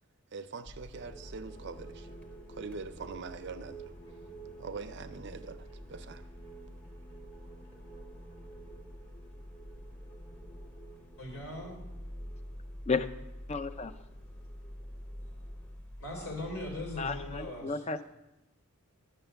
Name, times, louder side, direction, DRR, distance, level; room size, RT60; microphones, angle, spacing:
voice 1, 0.3-2.2 2.5-3.9 4.6-6.3, right 4 dB, 50° right, 0.5 m, -43 dB
sound 1, 0.7-17.4, left 1 dB, 5° left, 0.9 m, -48 dB
sound 2, 0.9-15.8, right 4 dB, 55° left, 2.0 m, -53 dB
voice 2, 11.2-11.8 16.0-17.8, left 1 dB, 75° left, 2.9 m, -39 dB
voice 3, 13.5-14.0 17.0-18.0, left 4 dB, 30° left, 0.4 m, -33 dB
11.0 x 6.7 x 6.8 m
head